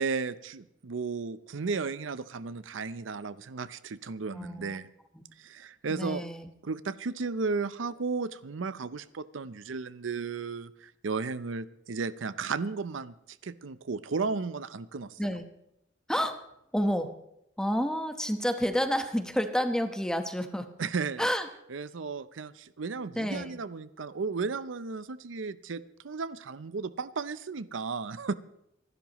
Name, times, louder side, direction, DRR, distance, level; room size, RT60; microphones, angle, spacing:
voice 1, 0.0-4.9 5.4-6.2 6.6-15.2 20.8-21.3 21.7-28.3, right 4 dB, 90° right, 15 dB, 0.6 m, -34 dB
voice 2, 4.3-4.8 5.9-6.5 15.2-15.5 16.1-16.4 16.7-17.2 17.6-20.7 21.2-21.5 23.2-23.6, equal, 5° left, 7 dB, 1.1 m, -29 dB
25.5 x 12.0 x 3.1 m, 0.81 s
head